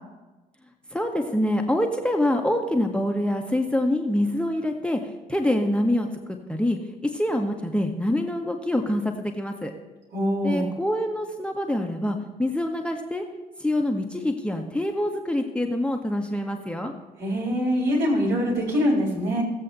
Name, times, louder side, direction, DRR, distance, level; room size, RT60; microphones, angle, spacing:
voice 1, 0.9-5.0 5.3-6.1 6.5-9.7 10.4-13.2 13.6-16.9, left 1 dB, 5° left, 4 dB, 1.2 m, -25 dB
voice 2, 10.1-10.7 17.2-19.4, equal, 60° right, -4 dB, 3.6 m, -23 dB
17.5 x 7.6 x 2.7 m, 1.1 s
figure-of-eight pair, 40°, 21 cm